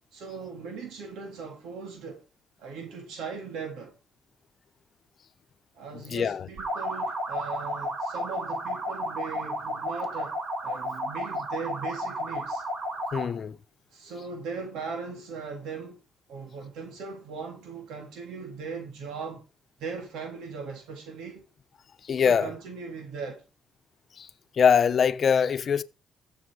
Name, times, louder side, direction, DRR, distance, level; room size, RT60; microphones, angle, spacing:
voice 1, 0.0-2.2 2.6-4.0 5.7-12.6 13.9-16.0 16.3-19.4 19.8-21.5 22.2-23.4, right 5 dB, 85° right, 3.5 m, -39 dB
voice 2, 6.1-6.5 13.1-13.6 22.1-22.5 24.2-24.3 24.6-25.8, left 7 dB, 50° left, 0.9 m, -23 dB
sound 1, 6.6-13.4, equal, 55° right, 6.2 m, -32 dB
15.5 x 7.2 x 5.0 m
cardioid pair, 90°, 0 cm